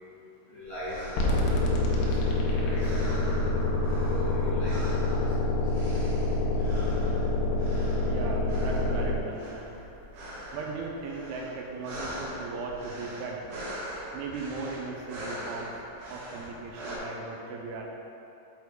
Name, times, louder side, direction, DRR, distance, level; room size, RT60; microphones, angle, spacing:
voice 1, 0.5-3.5 3.8-5.6, equal, 65° left, -11 dB, 2.0 m, -41 dB
sound 1, 0.7-17.0, equal, 65° right, 2.1 m, -41 dB
sound 2, 1.2-9.2, left 2 dB, 80° left, 2.6 m, -26 dB
voice 2, 8.1-9.7 10.5-13.6 14.1-15.7 16.1-17.8, right 3 dB, 85° right, -1 dB, 2.7 m, -37 dB
6.1 x 5.2 x 3.6 m, 2.8 s
omnidirectional pair, 4.7 m